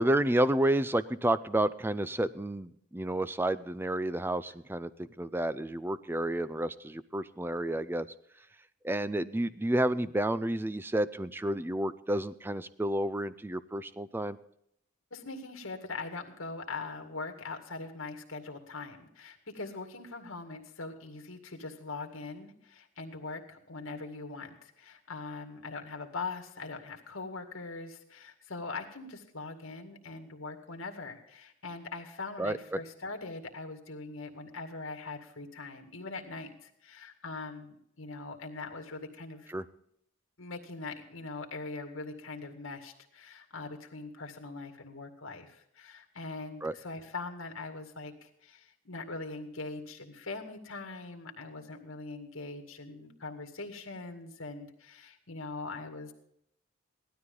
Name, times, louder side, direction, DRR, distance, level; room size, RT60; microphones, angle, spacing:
voice 1, 0.0-8.1 8.8-14.4 32.4-32.8 39.5-39.6 46.6-46.7, right 1 dB, 10° right, 15 dB, 0.4 m, -30 dB
voice 2, 15.1-39.5 40.4-56.1, left 3 dB, 75° left, 4 dB, 2.1 m, -42 dB
17.0 x 12.5 x 3.9 m, 0.73 s
head